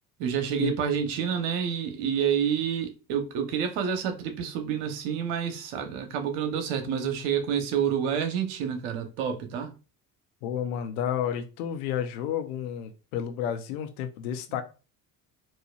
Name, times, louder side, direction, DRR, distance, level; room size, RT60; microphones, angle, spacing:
voice 1, 0.2-9.8, right 8 dB, 75° right, 1.0 m, -28 dB
voice 2, 10.4-14.6, left 9 dB, 80° left, 0.8 m, -31 dB
4.3 x 2.5 x 2.4 m
hypercardioid pair, 70°, 44 cm